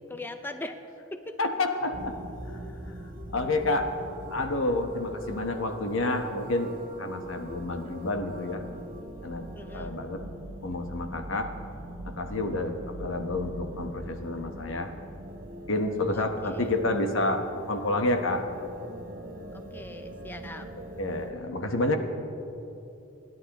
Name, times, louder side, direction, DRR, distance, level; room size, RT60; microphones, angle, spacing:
voice 1, 0.1-0.8 1.1-1.4 9.5-9.9 16.1-16.7 19.5-20.7, left 2 dB, 10° left, 7 dB, 0.5 m, -40 dB
voice 2, 1.4-2.1 3.3-3.9 4.3-8.6 9.2-9.5 9.7-10.2 10.6-11.5 12.0-14.9 15.7-18.4 21.0-22.0, left 2 dB, 75° left, 5 dB, 1.1 m, -29 dB
sound 1, 1.9-21.3, right 1 dB, 45° right, 1.2 m, -42 dB
29.0 x 10.5 x 3.0 m, 2.9 s
head